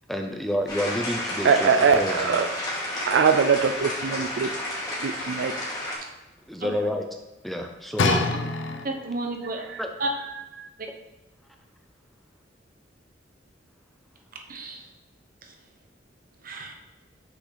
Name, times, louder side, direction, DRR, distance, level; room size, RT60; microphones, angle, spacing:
voice 1, 0.1-2.4 6.5-7.1 7.4-8.2 9.8-9.9, equal, ahead, 3 dB, 0.5 m, -29 dB
sound 1, 0.7-6.0, left 1 dB, 20° left, 1.9 m, -31 dB
voice 2, 1.4-2.5 3.1-4.5 5.0-5.5 9.7-9.8 10.6-10.7, right 6 dB, 70° right, 8 dB, 0.4 m, -22 dB
sound 2, 8.0-9.3 10.0-10.1, left 3 dB, 90° left, 0.6 m, -25 dB
voice 3, 8.8-9.7 10.0-10.1 14.5-14.8 15.4-15.5 16.4-16.7, right 2 dB, 50° right, 3 dB, 1.0 m, -31 dB
6.0 x 5.9 x 4.0 m, 1.0 s
head